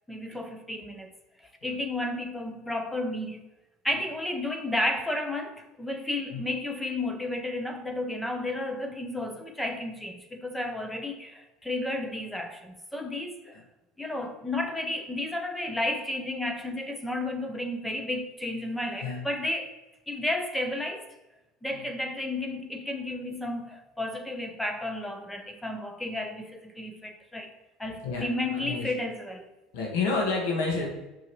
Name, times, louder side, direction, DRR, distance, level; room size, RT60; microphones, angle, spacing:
voice 1, 0.1-1.1 1.4-3.4 3.8-13.6 14.0-19.7 20.1-21.0 21.6-27.5 27.8-29.5, left 1 dB, 5° left, 6 dB, 0.8 m, -32 dB
voice 2, 28.0-29.0 29.7-30.9, left 4 dB, 80° left, 0 dB, 1.5 m, -29 dB
6.6 x 6.2 x 3.0 m, 1.0 s
supercardioid pair, 120°, 0 cm